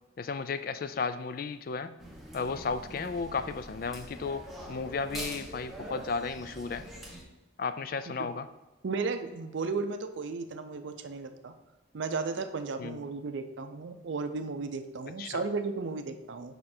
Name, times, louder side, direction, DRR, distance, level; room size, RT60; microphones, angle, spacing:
voice 1, 0.2-2.0 2.3-6.8 7.6-8.5 12.8-13.0 15.2-15.4, left 4 dB, 45° left, 12 dB, 0.3 m, -34 dB
sound 1, 2.0-7.2, right 1 dB, ahead, 1.0 m, -44 dB
voice 2, 8.8-11.5 11.9-16.6, right 4 dB, 70° right, 8 dB, 0.5 m, -34 dB
6.5 x 5.1 x 4.3 m, 1.1 s
head